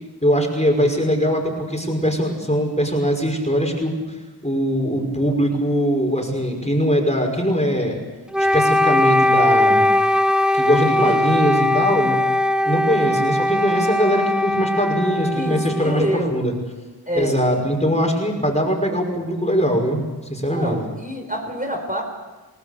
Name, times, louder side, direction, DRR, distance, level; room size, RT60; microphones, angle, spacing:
voice 1, 0.2-4.0 4.4-8.0 8.4-9.9 10.5-12.2 12.6-16.5 17.1-20.8, equal, 15° left, 1 dB, 5.7 m, -21 dB
Wind instrument woodwind instrument, 8.3-16.4, left 1 dB, ahead, 0.9 m, -19 dB
voice 2, 15.3-16.4 17.1-17.3 20.5-22.0, equal, 20° right, 1 dB, 4.7 m, -26 dB
28.5 x 19.5 x 6.8 m, 1.2 s
wide cardioid pair, 45°, 40 cm